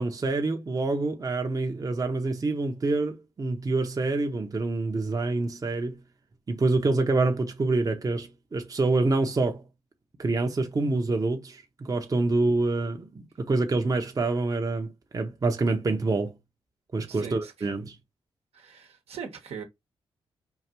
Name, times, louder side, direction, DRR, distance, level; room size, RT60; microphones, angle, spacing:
voice 1, 0.0-6.0 6.5-9.6 10.2-16.3 16.9-18.0, right 3 dB, 35° right, 0.8 m, -26 dB
voice 2, 17.1-17.7 18.5-19.6, right 6 dB, 80° right, 1.1 m, -40 dB
4.6 x 2.5 x 2.9 m
cardioid pair, 65°, 10 cm